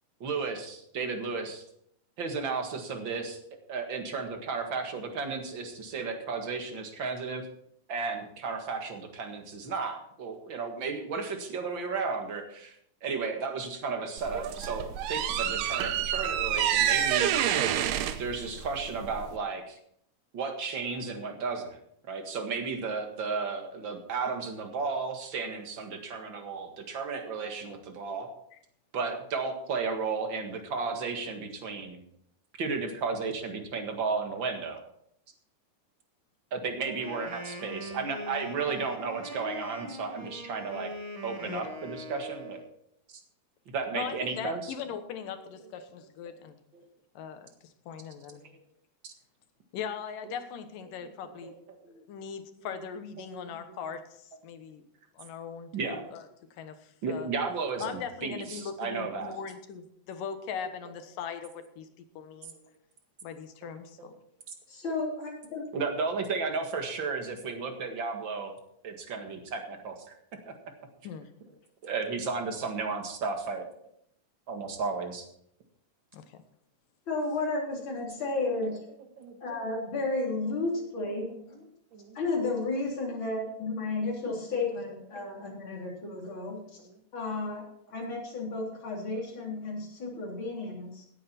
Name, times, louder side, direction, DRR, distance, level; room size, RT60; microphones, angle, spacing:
voice 1, 0.2-1.6 2.2-3.4 3.7-7.5 7.9-12.8 13.0-17.3 18.2-19.8 20.3-21.8 22.1-28.3 28.9-32.0 32.6-34.8 36.5-40.9 41.2-42.6 43.7-44.7 46.7-46.8 48.3-48.6 49.0-49.1 50.2-50.4 51.0-51.6 51.8-52.0 52.7-52.9 53.2-53.8 55.7-56.0 57.0-59.3 60.6-60.7 63.6-63.7 64.0-64.1 65.7-68.5 68.8-70.2 70.5-70.6 71.8-73.7 74.5-75.3 79.2-79.9 81.1-81.5 81.9-82.2 84.5-84.7 85.2-85.3 86.2-86.3 90.1-90.2, right 4 dB, 45° right, 4 dB, 2.1 m, -34 dB
sound 1, 14.2-19.4, right 10 dB, 85° right, 2.4 m, -28 dB
Wind instrument woodwind instrument, 36.8-42.7, left 1 dB, 20° right, 1.1 m, -42 dB
voice 2, 43.9-46.6 47.2-48.4 49.7-51.5 51.9-54.8 55.1-56.2 56.6-57.3 57.8-61.9 62.2-62.5 63.2-64.1 71.0-71.3 76.1-76.4, left 7 dB, 85° left, 9 dB, 2.9 m, -40 dB
voice 3, 64.7-65.6 77.1-78.8 79.4-81.3 82.1-86.6 87.1-87.6 87.9-91.0, left 3 dB, 35° left, -2 dB, 4.0 m, -32 dB
17.0 x 9.0 x 4.4 m, 0.71 s
omnidirectional pair, 3.8 m